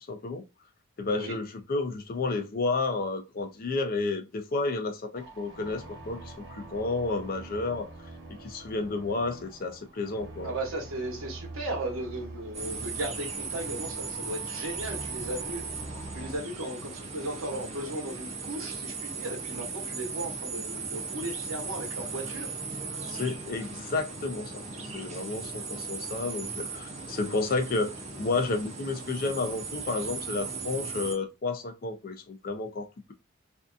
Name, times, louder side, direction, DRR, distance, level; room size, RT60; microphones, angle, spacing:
voice 1, 0.1-0.4 1.0-7.9 8.3-10.5 23.1-24.6 24.9-33.1, left 3 dB, 45° left, 0.4 m, -31 dB
voice 2, 1.1-1.4 10.4-15.7 16.1-22.5, right 1 dB, 85° right, 1.0 m, -36 dB
sound 1, 5.1-16.4, right 2 dB, 60° right, 1.0 m, -45 dB
sound 2, 12.5-31.2, right 4 dB, 30° right, 0.5 m, -37 dB
2.6 x 2.3 x 2.4 m
head